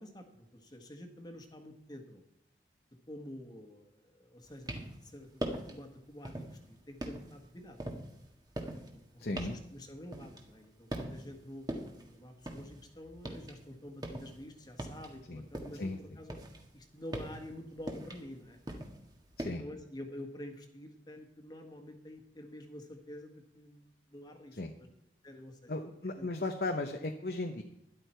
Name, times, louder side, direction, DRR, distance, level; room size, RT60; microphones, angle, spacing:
voice 1, 0.0-2.2 3.1-7.9 8.7-16.4 16.7-18.6 19.4-24.9 25.2-26.3, left 1 dB, 25° left, 5 dB, 1.6 m, -48 dB
sound 1, 4.5-5.1 5.4-5.8 6.2-6.6 7.0-10.6 10.9-11.4 11.7-13.6 13.9-15.9 16.2-19.5, right 1 dB, 25° right, 1.6 m, -41 dB
voice 2, 9.2-9.6 15.3-15.4 15.8-16.0 19.4-19.6 24.6-24.7 25.7-27.6, left 2 dB, 60° left, 5 dB, 0.9 m, -36 dB
13.0 x 11.0 x 4.5 m, 0.80 s
head